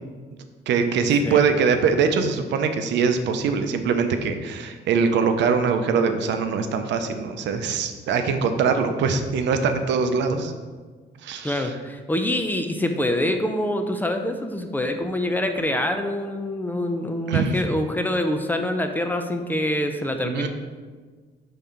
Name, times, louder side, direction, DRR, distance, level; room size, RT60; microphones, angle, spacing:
voice 1, 0.7-10.5 11.2-11.7 17.3-17.6 20.2-20.5, right 5 dB, 80° right, 7 dB, 0.6 m, -22 dB
voice 2, 11.4-20.5, left 1 dB, 10° left, 5 dB, 0.4 m, -25 dB
5.4 x 3.7 x 5.6 m, 1.4 s
cardioid pair, 145°, 18 cm